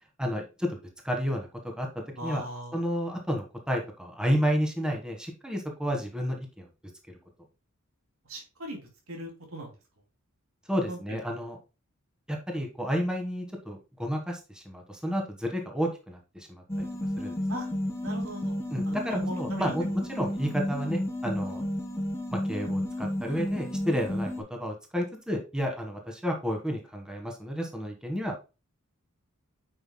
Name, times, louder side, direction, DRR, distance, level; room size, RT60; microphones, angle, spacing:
voice 1, 0.2-0.8 1.0-1.5 1.8-2.4 2.7-6.7 7.1-7.2 10.7-11.6 12.3-16.9 17.2-17.4 18.7-21.6 22.3-28.4, equal, 5° right, 2 dB, 1.5 m, -31 dB
voice 2, 2.2-2.8 8.3-8.8 9.1-9.7 10.9-11.4 17.5-17.7 18.0-18.5 18.9-19.7, right 1 dB, 80° right, 1 dB, 2.6 m, -39 dB
sound 1, 16.7-24.4, left 1 dB, 15° left, 1.3 m, -32 dB
9.0 x 5.9 x 2.2 m, 0.30 s
head